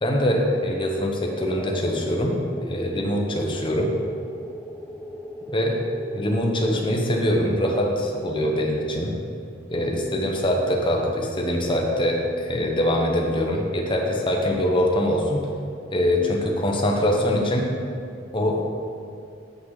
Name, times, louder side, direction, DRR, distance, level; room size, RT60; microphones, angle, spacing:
voice 1, 0.0-3.9 5.5-5.8 6.1-9.1 9.7-15.5 15.9-17.7 18.3-18.6, equal, 25° left, 0 dB, 1.0 m, -23 dB
sound 1, 1.2-6.5, left 1 dB, 5° left, 0.4 m, -38 dB
8.0 x 6.1 x 4.9 m, 2.5 s
head